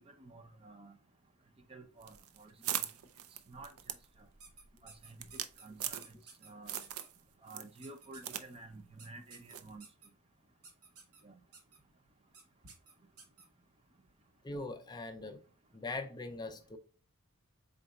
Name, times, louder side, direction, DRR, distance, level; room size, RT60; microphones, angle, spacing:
voice 1, 0.1-0.9 1.7-2.7 3.5-3.7 4.8-6.2 6.4-6.8 7.4-9.8 11.2-11.3, right 2 dB, 25° right, 0.6 m, -52 dB
sound 1, 2.0-6.4 6.7-7.2 7.5-8.5 8.7-8.8 9.5-9.7, right 10 dB, 70° right, 0.5 m, -40 dB
sound 2, 4.4-5.7 6.0-6.5 6.8-7.1 7.8-8.4 9.0-10.1 10.6-11.2 11.5-11.8 12.3-12.4 12.7-13.5, right 4 dB, 90° right, 1.4 m, -54 dB
voice 2, 14.4-15.4 15.7-16.8, left 2 dB, 20° left, 0.4 m, -41 dB
4.4 x 3.9 x 2.3 m
head